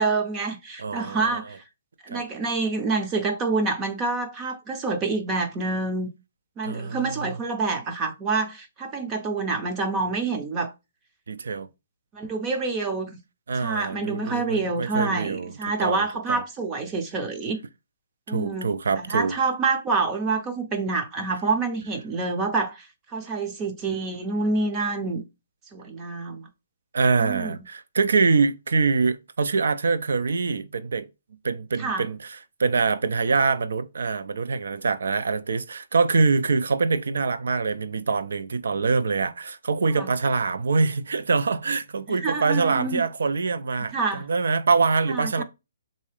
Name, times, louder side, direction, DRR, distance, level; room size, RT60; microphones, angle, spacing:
voice 1, 0.0-1.6 2.0-6.1 6.6-10.7 12.1-13.2 13.6-17.6 18.3-22.9 23.1-25.2 25.7-26.5 27.2-27.6 31.8-32.0 40.0-40.1 42.1-43.0 43.9-44.2 45.1-45.4, right 3 dB, 15° right, 0.5 m, -27 dB
voice 2, 0.8-1.4 2.1-2.2 6.6-7.3 11.3-11.7 13.5-16.4 18.3-19.4 26.9-31.1 31.4-45.4, right 4 dB, 80° right, 0.4 m, -24 dB
3.6 x 2.7 x 3.2 m
hypercardioid pair, 170°, 0 cm